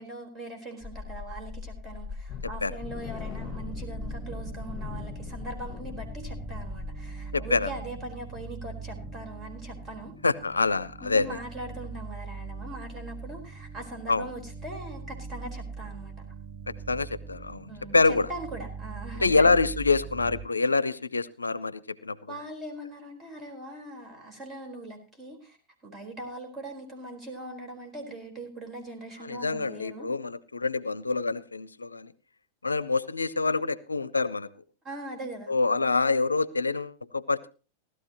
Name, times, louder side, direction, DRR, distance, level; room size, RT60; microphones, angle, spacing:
voice 1, 0.0-10.1 11.0-16.1 17.7-19.5 22.3-25.6 25.8-30.1 34.8-35.5, right 1 dB, 25° right, 3 dB, 4.3 m, -41 dB
sound 1, 0.8-7.3, left 4 dB, ahead, 0.7 m, -40 dB
sound 2, 2.3-10.0 10.3-10.5 10.9-11.0, left 8 dB, 30° left, 1.1 m, -45 dB
sound 3, 3.4-20.4, right 4 dB, 45° right, 2.8 m, -41 dB
voice 2, 7.3-7.7 10.2-11.3 14.1-14.3 16.7-18.3 19.2-22.4 29.2-32.1 32.6-34.5 35.5-37.5, left 3 dB, 90° left, 19 dB, 0.5 m, -26 dB
16.5 x 12.5 x 3.0 m, 0.35 s
figure-of-eight pair, 95°, 0 cm